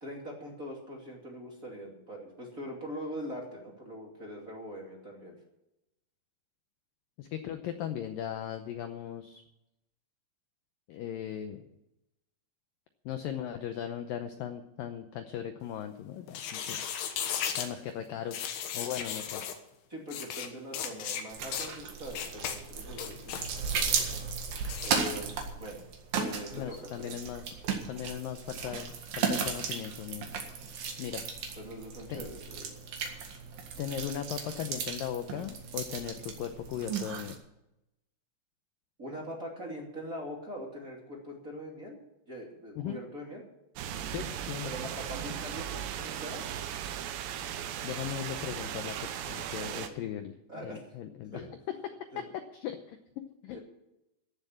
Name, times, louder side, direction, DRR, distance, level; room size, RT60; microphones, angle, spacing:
voice 1, 0.0-5.4 19.9-23.9 24.8-25.8 26.1-27.2 31.6-32.7 39.0-42.0 42.3-43.4 44.6-46.4 49.5-50.0 50.5-50.9 51.3-51.4 52.1-52.3 53.5-53.6, equal, 25° right, -1 dB, 2.3 m, -42 dB
voice 2, 7.2-9.4 10.9-11.6 13.1-16.8 17.6-18.4 18.7-19.4 26.5-30.3 31.0-31.2 32.1-32.2 33.8-37.4 42.8-43.0 44.1-44.7 47.8-51.4 51.8-51.9 52.5-53.6, left 10 dB, 85° left, 8 dB, 2.0 m, -38 dB
sound 1, 16.3-17.7 18.3-19.6 20.1-20.5 20.7-21.2 21.5-21.7 22.1-22.6 22.9-23.5 24.7-25.0, left 8 dB, 70° left, 3.1 m, -35 dB
sound 2, 21.3-37.4, right 6 dB, 60° right, 3.2 m, -36 dB
sound 3, 43.8-49.9, right 9 dB, 85° right, 3.3 m, -37 dB
15.0 x 7.3 x 9.7 m, 0.89 s
omnidirectional pair, 5.1 m